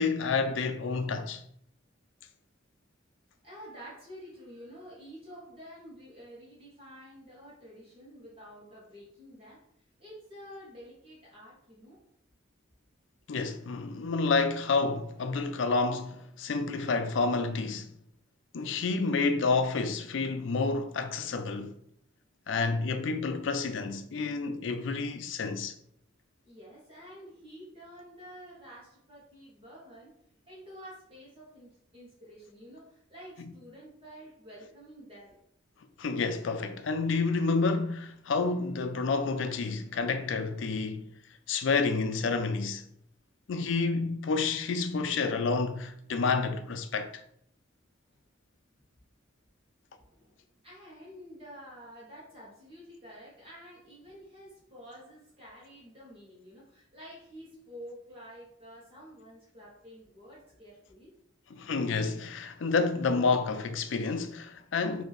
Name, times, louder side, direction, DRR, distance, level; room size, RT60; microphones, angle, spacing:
voice 1, 0.0-1.4 13.3-17.9 18.5-21.7 22.5-25.7 36.0-41.1 41.5-42.9 43.5-47.2 61.5-65.0, left 4 dB, 75° left, 0.4 m, -29 dB
voice 2, 3.4-9.6 10.0-12.0 26.4-30.1 30.5-35.4 50.0-61.1, equal, 30° right, 1.3 m, -49 dB
3.4 x 2.7 x 4.1 m
head